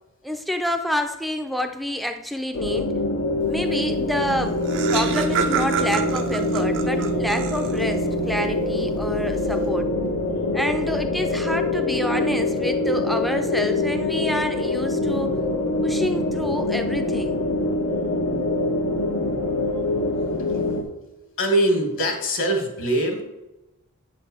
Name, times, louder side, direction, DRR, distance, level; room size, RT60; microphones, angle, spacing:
voice 1, 0.2-2.9 3.5-4.6 4.9-9.9 10.5-15.4 15.8-17.4, equal, ahead, 6 dB, 0.6 m, -28 dB
sound 1, 2.5-20.8, left 2 dB, 75° left, 1.2 m, -24 dB
Laughter, 4.1-4.2 4.4-8.0, right 6 dB, 55° right, 0.7 m, -28 dB
voice 2, 20.2-20.9 21.4-23.2, right 1 dB, 60° left, 3 dB, 1.9 m, -23 dB
8.9 x 4.1 x 6.9 m, 0.97 s
head